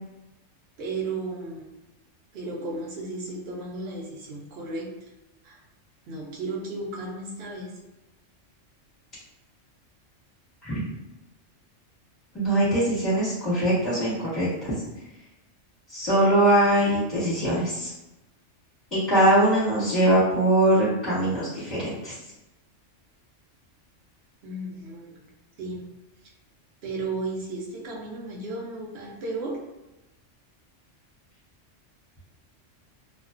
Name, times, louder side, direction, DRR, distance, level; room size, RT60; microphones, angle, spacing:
voice 1, 0.8-1.7 2.3-4.9 5.4-5.6 6.1-7.7 24.4-25.2 25.6-25.8 26.8-29.6, right 2 dB, 60° right, -2 dB, 0.8 m, -34 dB
voice 2, 12.3-14.7 15.9-17.9 18.9-22.1, right 1 dB, ahead, -10 dB, 0.9 m, -22 dB
2.4 x 2.2 x 2.4 m, 0.97 s
omnidirectional pair, 1.3 m